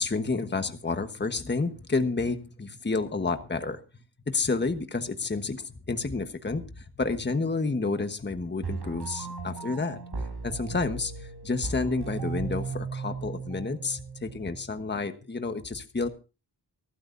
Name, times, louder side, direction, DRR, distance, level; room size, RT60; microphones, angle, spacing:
voice 1, 0.0-3.8 4.3-10.0 10.4-16.1, left 3 dB, 25° left, 8 dB, 1.2 m, -30 dB
sound 1, 8.6-14.6, right 4 dB, 70° right, 5.9 m, -36 dB
24.5 x 12.5 x 2.6 m, 0.32 s
wide cardioid pair, 85°, 40 cm